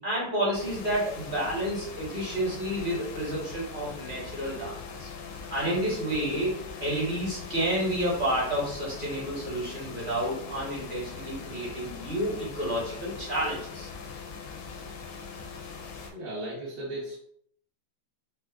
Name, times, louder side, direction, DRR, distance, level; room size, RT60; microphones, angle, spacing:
voice 1, 0.0-5.1 5.5-6.5 6.8-13.9, right 1 dB, 35° right, -7 dB, 0.8 m, -30 dB
sound 1, 0.5-16.1, left 5 dB, 75° left, 1.3 m, -41 dB
voice 2, 16.1-17.2, right 1 dB, 60° right, -8 dB, 1.2 m, -36 dB
4.5 x 2.1 x 2.3 m, 0.68 s
omnidirectional pair, 2.3 m